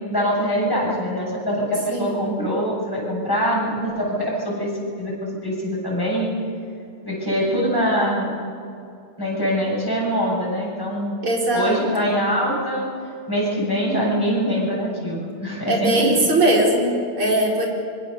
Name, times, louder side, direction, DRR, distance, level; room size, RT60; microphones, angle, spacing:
voice 1, 0.0-4.7 5.0-6.3 7.1-8.3 9.2-11.1 11.5-12.9 13.3-16.3, equal, 10° left, -4 dB, 7.5 m, -23 dB
voice 2, 1.9-2.2 11.2-11.8 15.7-17.7, right 1 dB, 75° right, -2 dB, 5.5 m, -20 dB
25.0 x 24.0 x 6.9 m, 2.6 s
omnidirectional pair, 2.4 m